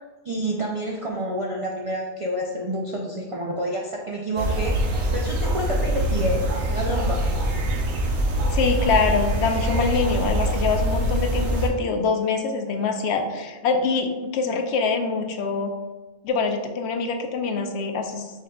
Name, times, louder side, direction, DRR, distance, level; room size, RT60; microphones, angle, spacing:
voice 1, 0.2-6.4 6.7-7.3, right 1 dB, 60° right, -2 dB, 0.3 m, -28 dB
sound 1, 4.4-11.7, right 1 dB, 80° right, 1.0 m, -24 dB
voice 2, 8.5-15.7 16.2-18.3, left 4 dB, 75° left, 5 dB, 0.8 m, -24 dB
5.6 x 3.7 x 2.2 m, 1.2 s
omnidirectional pair, 1.2 m